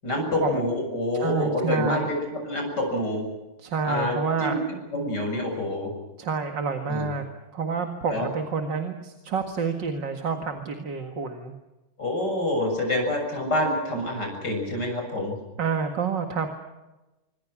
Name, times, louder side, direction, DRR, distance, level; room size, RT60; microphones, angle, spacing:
voice 1, 0.0-3.3 3.8-4.2 4.4-4.6 4.9-5.9 6.9-7.1 8.1-8.3 12.0-15.4, left 1 dB, 50° left, 2 dB, 7.7 m, -27 dB
voice 2, 1.2-2.1 3.6-4.8 6.2-7.2 7.5-11.5 15.6-16.5, right 5 dB, 60° right, 5 dB, 2.5 m, -28 dB
26.5 x 25.0 x 6.2 m, 1.1 s
omnidirectional pair, 2.3 m